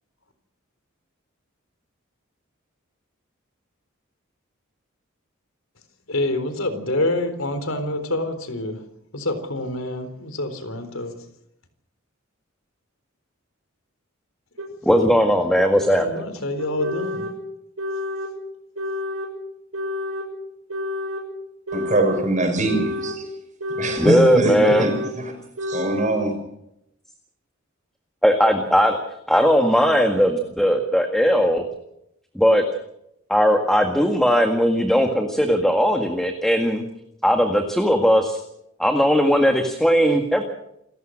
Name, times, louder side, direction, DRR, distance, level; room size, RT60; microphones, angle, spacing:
voice 1, 6.1-8.8 9.1-11.1 16.0-17.2, left 1 dB, 80° left, 10 dB, 4.0 m, -26 dB
sound 1, 14.6-14.7 15.6-15.7 16.6-17.3 17.8-18.3 18.8-19.3 19.7-20.3 20.7-21.3 21.7-22.2 22.6-23.2 23.6-24.2 24.6-25.1 25.6-26.1, left 2 dB, 85° right, 6.3 m, -29 dB
voice 2, 14.8-16.2 24.0-24.9 28.2-29.0 29.3-31.7 32.4-32.6 33.3-36.8 37.2-38.4 38.8-40.4, equal, ahead, 5 dB, 1.8 m, -18 dB
voice 3, 21.7-23.2 23.8-25.3 25.6-26.3, right 2 dB, 40° right, 5 dB, 6.0 m, -23 dB
28.5 x 15.5 x 6.5 m, 0.77 s
head